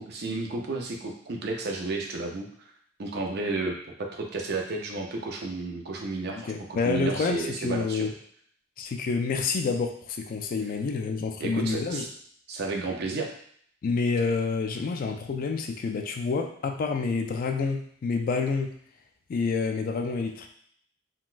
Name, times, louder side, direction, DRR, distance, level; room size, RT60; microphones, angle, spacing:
voice 1, 0.0-2.5 3.0-8.1 11.4-12.1 12.5-13.3, right 3 dB, 55° right, 1 dB, 0.5 m, -32 dB
voice 2, 6.3-8.1 8.8-12.1 13.8-18.7 19.3-20.5, left 4 dB, 45° left, 4 dB, 0.3 m, -28 dB
3.8 x 2.2 x 2.4 m, 0.63 s
head